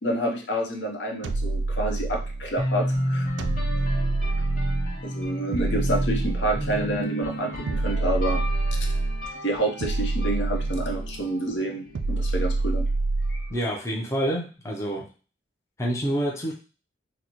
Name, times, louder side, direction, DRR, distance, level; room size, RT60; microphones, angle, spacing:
voice 1, 0.0-3.3 5.0-8.4 9.4-12.9 13.3-13.5, right 1 dB, 75° left, 0 dB, 0.8 m, -28 dB
sound 1, 1.2-2.6 3.4-5.0 5.5-6.9 7.7-9.3 9.8-11.2 11.9-13.6, right 2 dB, 75° right, 0.3 m, -26 dB
sound 2, 2.6-12.4, equal, 45° left, 1.0 m, -32 dB
voice 2, 13.5-15.1 15.8-16.5, equal, 15° left, -2 dB, 0.6 m, -27 dB
3.9 x 2.0 x 3.0 m, 0.35 s
head